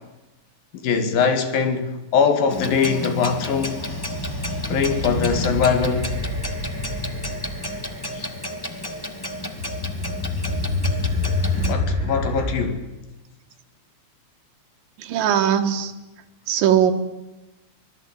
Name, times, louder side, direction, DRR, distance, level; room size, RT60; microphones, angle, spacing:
voice 1, 0.8-3.8 4.7-6.2 8.1-8.3 11.4-12.8, left 6 dB, 80° left, 3.9 m, -22 dB
Clock, 2.5-11.7, left 1 dB, 30° left, 0.4 m, -32 dB
sound 1, 2.5-12.6, left 2 dB, 25° right, 4.2 m, -28 dB
voice 2, 15.0-15.9 16.5-16.9, right 9 dB, 75° right, 3.3 m, -19 dB
25.5 x 19.0 x 8.8 m
omnidirectional pair, 4.0 m